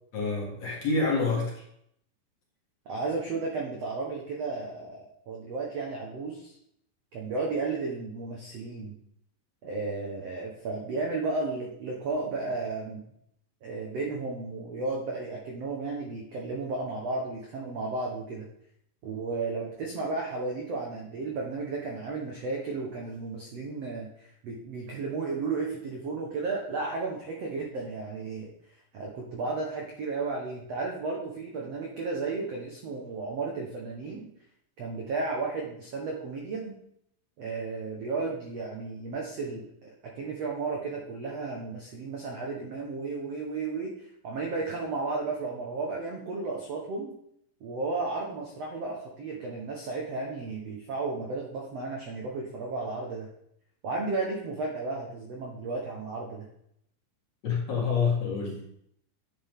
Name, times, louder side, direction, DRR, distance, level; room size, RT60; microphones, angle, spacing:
voice 1, 0.1-1.6 57.4-58.6, left 4 dB, 45° left, -3 dB, 2.4 m, -27 dB
voice 2, 2.8-6.5 7.1-8.9 9.6-13.0 13.6-18.5 19.0-24.1 24.4-28.5 28.9-34.2 34.8-36.7 37.4-39.9 40.1-47.1 47.6-53.3 53.8-56.5, right 3 dB, 80° right, -1 dB, 1.4 m, -33 dB
11.5 x 8.8 x 3.7 m, 0.71 s
omnidirectional pair, 5.1 m